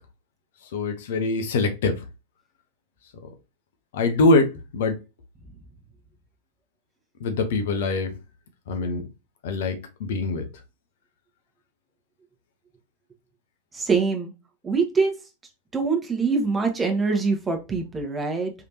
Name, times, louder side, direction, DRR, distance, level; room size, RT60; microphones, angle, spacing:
voice 1, 0.6-2.0 3.2-3.3 3.9-5.0 7.2-8.1 8.7-9.0 9.4-10.5, left 3 dB, 55° left, 0.8 m, -23 dB
voice 2, 13.7-14.3 14.6-15.1 15.7-18.5, right 4 dB, 15° right, 1.2 m, -24 dB
4.8 x 3.3 x 2.8 m
figure-of-eight pair, 90°, 0 cm